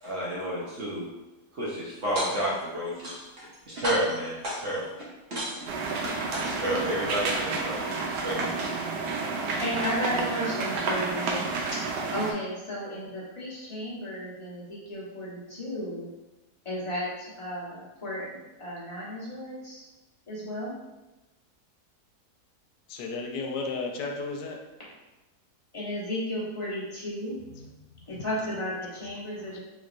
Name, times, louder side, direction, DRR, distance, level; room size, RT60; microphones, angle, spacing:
voice 1, 0.0-1.0 1.5-5.7 6.0-8.5, equal, 55° right, -7 dB, 0.9 m, -31 dB
sound 1, 2.0-2.6 3.0-3.6 3.8-4.9 5.3-5.9 6.3-6.9, equal, 70° right, 2.0 m, -34 dB
sound 2, 5.7-12.3, right 4 dB, 85° right, 1.2 m, -30 dB
voice 2, 9.6-11.8 12.1-16.1 16.6-18.3 18.6-19.8 20.3-20.8 25.7-27.4 28.1-29.6, equal, 25° left, -8 dB, 0.9 m, -33 dB
voice 3, 22.9-24.6 27.5-27.7 28.1-28.2 29.5-29.6, left 3 dB, 90° left, 2 dB, 1.2 m, -34 dB
3.5 x 3.1 x 2.5 m, 1.1 s
omnidirectional pair, 1.7 m